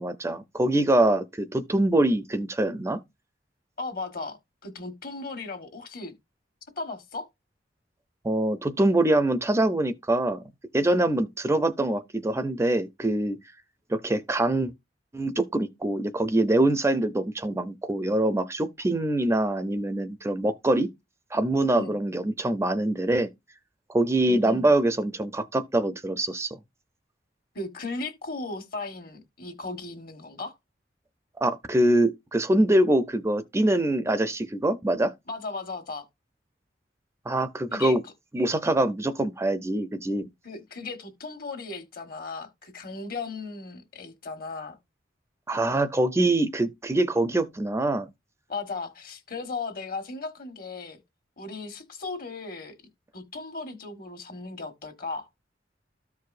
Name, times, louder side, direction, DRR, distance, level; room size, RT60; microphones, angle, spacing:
voice 1, 0.0-3.0 8.2-10.4 10.7-13.4 13.9-14.7 15.1-20.9 21.3-23.3 23.9-26.6 31.4-35.1 37.3-38.0 38.3-40.3 45.5-48.1, right 1 dB, 15° right, 0.5 m, -24 dB
voice 2, 3.8-4.4 4.6-6.1 6.8-7.3 10.9-11.1 21.7-22.0 24.2-24.7 27.5-30.6 35.3-36.0 37.7-38.0 40.4-44.8 48.5-51.0 51.4-52.7 53.1-55.3, left 3 dB, 55° left, 1.4 m, -36 dB
13.5 x 4.7 x 2.5 m
head